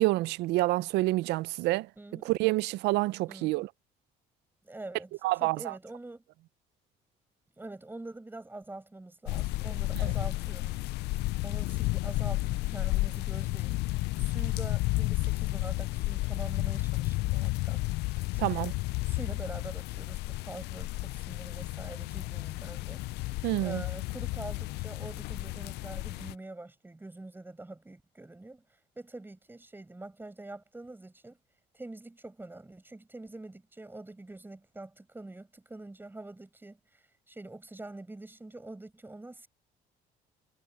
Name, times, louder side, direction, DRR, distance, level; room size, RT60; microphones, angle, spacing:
voice 1, 0.0-1.9 2.2-3.7 5.2-5.7 18.4-18.7 23.4-23.8, right 19 dB, 85° right, 0.5 m, -28 dB
voice 2, 2.0-2.3 3.3-3.7 4.6-5.1 5.4-6.2 7.6-10.8 11.4-17.8 18.1-18.8 19.0-28.6 29.0-31.4 31.7-39.5, right 2 dB, 10° right, 5.5 m, -45 dB
sound 1, 9.3-26.3, left 20 dB, 80° left, 0.4 m, -32 dB
cardioid pair, 110°, 17 cm